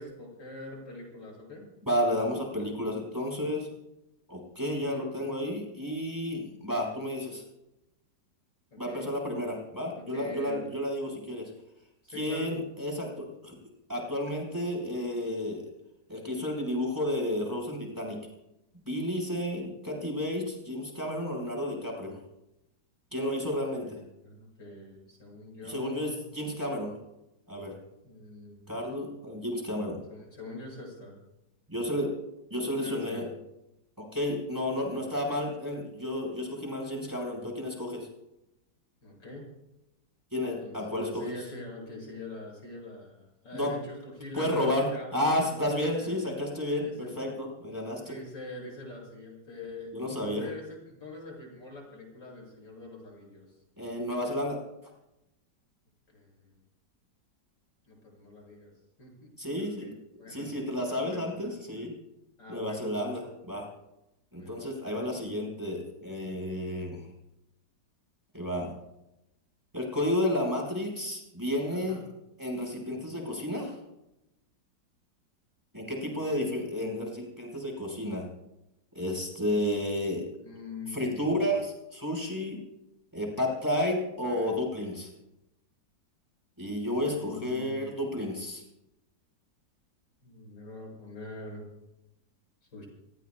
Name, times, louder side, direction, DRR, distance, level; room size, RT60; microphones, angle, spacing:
voice 1, 0.0-1.6 4.9-5.1 8.7-9.1 9.9-10.6 12.0-12.5 23.7-26.2 28.0-28.7 30.1-31.2 32.8-33.3 34.9-35.0 39.0-39.5 40.6-46.2 46.8-47.3 48.1-53.6 56.1-56.6 57.9-58.7 59.0-59.3 59.6-59.9 60.2-60.4 60.9-61.5 62.4-63.1 64.3-64.7 71.7-71.9 75.9-76.6 80.4-81.6 87.1-87.9 90.2-91.6 92.7-92.9, left 2 dB, 80° left, -2 dB, 8.1 m, -44 dB
voice 2, 1.9-3.7 4.3-7.4 8.8-11.5 12.1-13.5 13.9-15.7 16.1-18.2 18.8-22.2 23.1-24.0 25.7-26.9 27.5-27.7 28.7-30.0 31.7-32.1 32.5-33.2 34.0-38.1 40.3-41.2 43.5-43.7 44.3-46.9 47.2-48.1 49.9-50.5 53.8-54.6 59.4-59.9 60.3-61.9 62.5-63.7 64.3-67.1 68.3-68.7 69.7-72.0 72.4-73.8 75.7-78.3 78.9-80.2 80.9-82.6 83.1-85.1 86.6-88.6, left 1 dB, 10° right, 0 dB, 4.8 m, -31 dB
29.5 x 19.0 x 2.3 m, 0.90 s
omnidirectional pair, 1.9 m